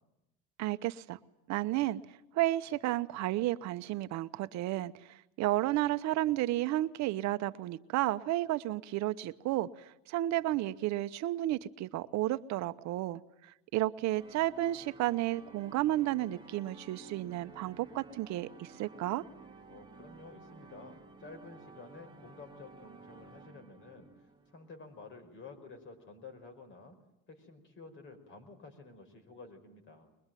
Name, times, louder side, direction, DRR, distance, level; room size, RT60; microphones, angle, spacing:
voice 1, 0.6-1.2 1.5-2.0 2.3-19.2, right 15 dB, 65° right, 12 dB, 0.8 m, -32 dB
sound 1, 14.2-25.2, right 4 dB, 15° right, 1.8 m, -54 dB
voice 2, 19.7-24.1 24.5-27.0 27.3-30.1, left 3 dB, 40° left, 5 dB, 5.2 m, -51 dB
22.5 x 22.0 x 9.1 m, 0.90 s
cardioid pair, 155°, 29 cm